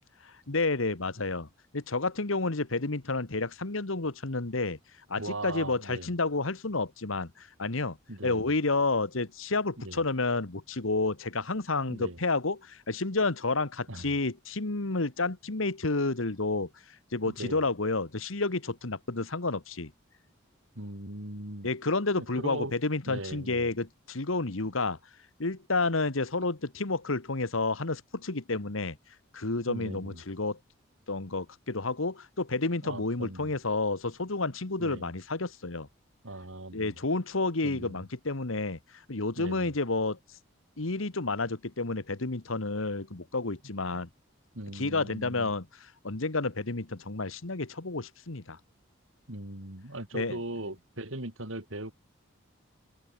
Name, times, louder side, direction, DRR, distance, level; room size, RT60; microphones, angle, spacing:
voice 1, 0.2-1.5 1.7-4.8 5.1-8.0 8.2-16.7 17.1-19.9 21.6-25.0 25.4-29.0 29.3-30.6 31.1-35.9 36.7-38.8 39.1-40.2 40.8-44.1 44.7-48.6 50.1-50.4, left 3 dB, 80° left, 1.6 m, -30 dB
voice 2, 5.2-6.1 8.1-8.5 9.8-10.0 11.9-12.2 13.9-14.1 17.2-17.6 20.7-21.7 22.2-22.7 23.1-23.7 29.7-30.2 32.8-33.5 34.8-35.1 36.2-37.0 37.6-38.0 39.4-39.7 44.5-45.5 49.3-51.9, right 1 dB, 75° right, 4.5 m, -39 dB
open air
head